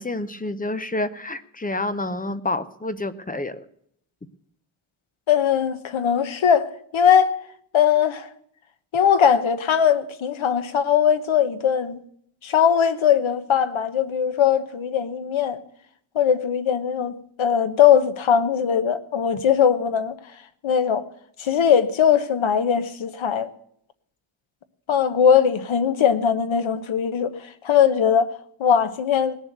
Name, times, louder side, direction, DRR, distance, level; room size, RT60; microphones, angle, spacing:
voice 1, 0.0-3.6, left 2 dB, 15° left, 0.6 m, -28 dB
voice 2, 5.3-7.4 7.7-8.3 8.9-12.0 12.4-15.6 16.1-20.1 20.6-21.0 21.4-23.5 24.9-28.3 28.6-29.4, left 8 dB, 65° left, 1.2 m, -20 dB
19.0 x 7.2 x 8.1 m
wide cardioid pair, 175°, 50 cm